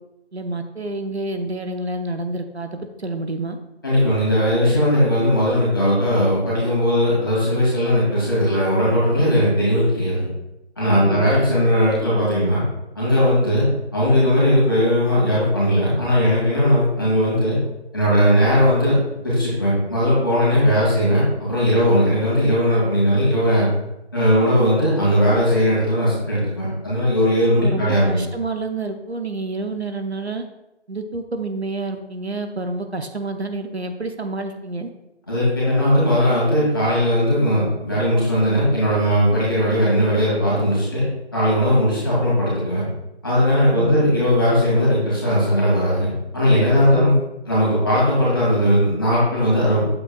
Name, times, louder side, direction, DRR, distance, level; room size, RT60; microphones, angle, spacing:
voice 1, 0.3-3.6 11.0-11.3 27.6-30.4 30.9-34.9 43.7-44.0 46.9-47.1, right 2 dB, 70° right, 6 dB, 0.8 m, -28 dB
voice 2, 3.8-10.2 10.8-12.6 13.0-13.7 13.9-17.6 17.9-19.0 19.2-23.7 24.1-28.2 35.3-41.0 41.3-42.9 43.2-47.1 47.5-49.9, equal, 20° left, -7 dB, 2.2 m, -18 dB
8.6 x 7.6 x 2.3 m, 0.92 s
figure-of-eight pair, 170°, 34 cm